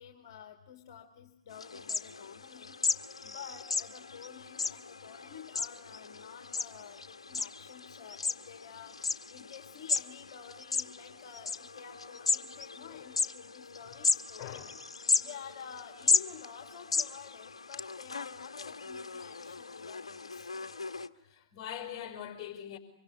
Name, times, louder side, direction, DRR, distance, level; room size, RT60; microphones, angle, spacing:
voice 1, 0.0-14.7 15.2-20.5, left 8 dB, 45° left, 2.5 m, -50 dB
sound 1, 1.5-21.1, left 4 dB, 75° left, 1.2 m, -35 dB
voice 2, 14.4-14.7 21.2-22.8, left 10 dB, 30° left, 5.7 m, -42 dB
25.0 x 23.0 x 9.9 m
figure-of-eight pair, 120°, 3 cm